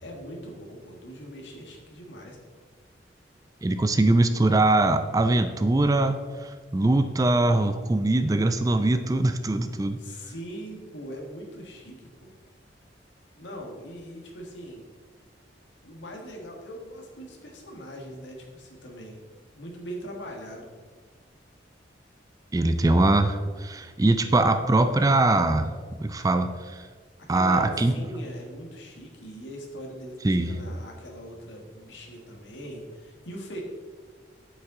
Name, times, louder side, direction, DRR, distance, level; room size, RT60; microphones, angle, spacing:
voice 1, 0.0-2.4 10.0-12.3 13.3-14.8 15.8-19.2 19.5-20.9 27.3-33.6, equal, 80° left, 0 dB, 1.6 m, -41 dB
voice 2, 3.6-10.0 22.5-25.7 26.0-26.9 27.3-27.9 30.2-30.5, right 2 dB, 20° right, 9 dB, 0.4 m, -22 dB
8.0 x 7.4 x 3.8 m, 1.5 s
head